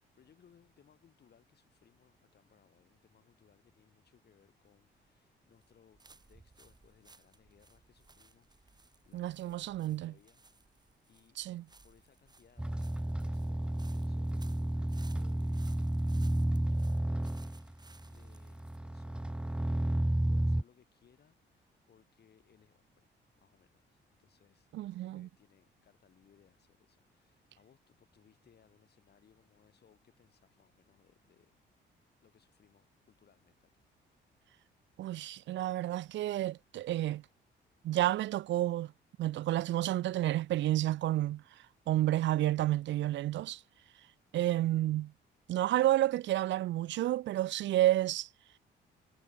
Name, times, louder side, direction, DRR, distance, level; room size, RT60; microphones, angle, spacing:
voice 1, 0.0-10.4 11.1-11.4 11.8-20.0 20.3-23.1 23.4-31.6 32.2-33.9, left 8 dB, 55° left, 7.6 m, -67 dB
sound 1, 4.7-20.2, right 3 dB, 20° right, 3.4 m, -62 dB
voice 2, 9.1-10.1 11.4-11.6 24.7-25.3 35.0-37.2 37.8-38.9 39.2-41.4 41.9-43.6 44.3-45.1 45.5-48.3, right 14 dB, 65° right, 0.5 m, -30 dB
sound 2, 12.6-20.6, right 1 dB, 5° right, 0.7 m, -32 dB
cardioid pair, 90°, 20 cm